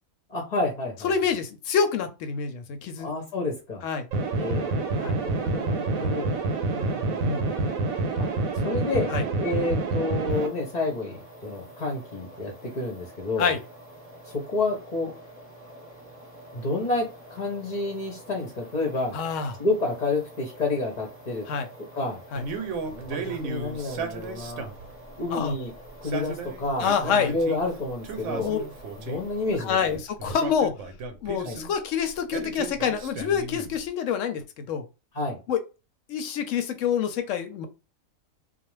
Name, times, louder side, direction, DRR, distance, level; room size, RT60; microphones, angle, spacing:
voice 1, 0.3-1.1 3.0-3.8 4.4-6.3 6.7-7.4 8.2-8.3 8.6-13.5 14.3-15.1 16.5-19.2 19.6-21.4 21.9-22.2 22.8-24.7 25.2-25.7 26.0-28.5 29.1-30.0 31.4-31.6 35.1-35.4, left 2 dB, 40° left, 0 dB, 0.6 m, -29 dB
voice 2, 1.0-3.1 3.8-4.1 5.0-5.1 6.0-6.1 7.2-7.5 9.1-9.2 13.4-13.6 19.1-19.5 21.5-21.7 22.3-22.4 25.3-25.5 26.8-27.3 28.4-28.6 29.6-30.7 31.2-34.9 35.5-35.6 36.1-37.7, left 7 dB, 70° left, 8 dB, 0.9 m, -27 dB
sound 1, 4.1-10.5, right 3 dB, 90° right, 1.1 m, -27 dB
sound 2, 10.3-30.0, right 1 dB, 10° left, 0.9 m, -47 dB
Male speech man speaking, 22.4-24.9 25.9-27.6 28.0-29.3 30.2-31.7 32.3-33.8, right 4 dB, 70° right, 0.9 m, -35 dB
2.4 x 2.1 x 3.0 m, 0.30 s
omnidirectional pair, 1.4 m